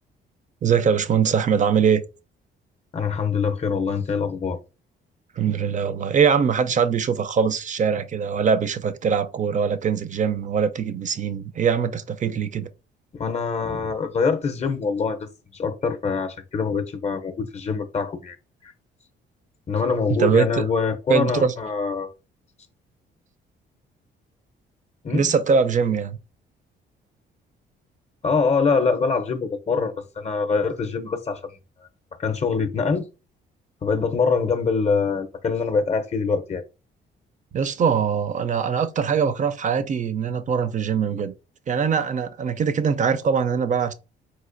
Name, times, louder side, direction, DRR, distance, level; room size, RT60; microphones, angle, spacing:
voice 1, 0.6-2.0 5.4-12.7 20.2-20.6 21.1-21.5 25.1-26.2 37.5-41.3 41.7-43.9, right 6 dB, 40° right, 0.4 m, -22 dB
voice 2, 2.9-4.6 13.2-18.4 18.6-18.7 19.7-22.1 25.0-25.3 28.2-31.4 32.2-33.1 33.8-36.6, left 5 dB, 35° left, 0.5 m, -24 dB
4.1 x 2.4 x 2.5 m
cardioid pair, 90°, 20 cm